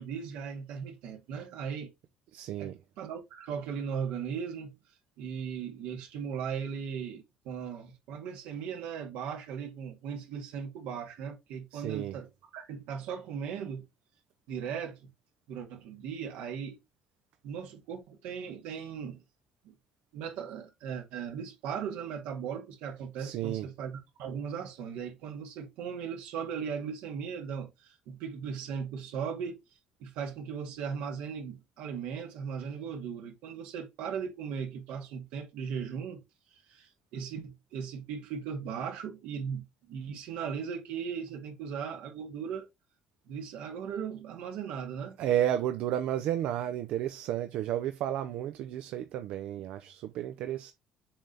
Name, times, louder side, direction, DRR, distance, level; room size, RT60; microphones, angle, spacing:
voice 1, 0.0-1.9 2.6-4.7 5.2-12.3 12.5-13.9 14.5-15.0 15.5-16.8 17.4-19.2 19.6-19.7 20.1-29.6 30.0-36.2 36.5-42.7 43.3-45.2, right 7 dB, 90° right, 2.1 m, -38 dB
voice 2, 2.3-2.8 11.7-12.2 23.2-23.7 45.2-50.7, right 11 dB, 70° right, 0.6 m, -32 dB
7.2 x 3.4 x 3.9 m
cardioid pair, 120°, 2 cm